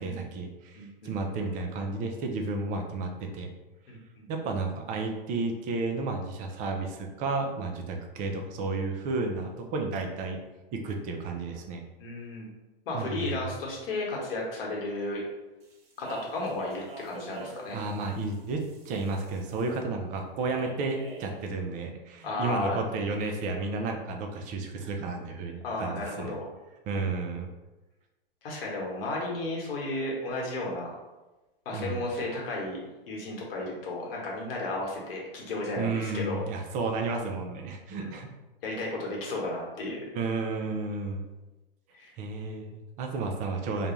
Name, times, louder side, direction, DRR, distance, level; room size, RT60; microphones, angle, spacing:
voice 1, 0.0-3.5 4.3-10.4 10.7-11.8 12.9-13.5 17.7-26.4 26.9-27.5 31.7-32.0 35.8-38.3 40.1-41.2 42.2-43.9, right 3 dB, 30° right, 3 dB, 0.4 m, -32 dB
voice 2, 0.7-1.1 3.9-4.3 12.0-12.5 12.9-15.2 16.0-17.8 22.2-22.8 25.6-26.5 27.3-27.4 28.4-31.0 31.6-32.8 33.1-36.4 37.9-38.1 38.6-40.0 41.9-42.1, left 2 dB, 70° left, -2 dB, 1.1 m, -33 dB
Speech, 15.6-19.8 20.5-21.4, right 3 dB, 85° right, 0.8 m, -46 dB
2.5 x 2.2 x 3.0 m, 1.1 s
hypercardioid pair, 115°, 29 cm